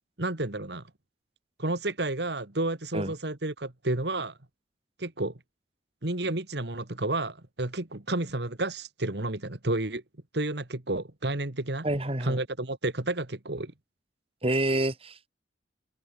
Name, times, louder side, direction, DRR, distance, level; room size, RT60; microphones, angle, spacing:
voice 1, 0.2-0.8 1.6-4.4 5.0-5.3 6.0-10.0 10.3-11.9 12.2-13.7, right 2 dB, 65° right, 2.0 m, -31 dB
voice 2, 11.8-12.4 14.4-15.3, right 1 dB, 30° right, 3.1 m, -28 dB
open air
head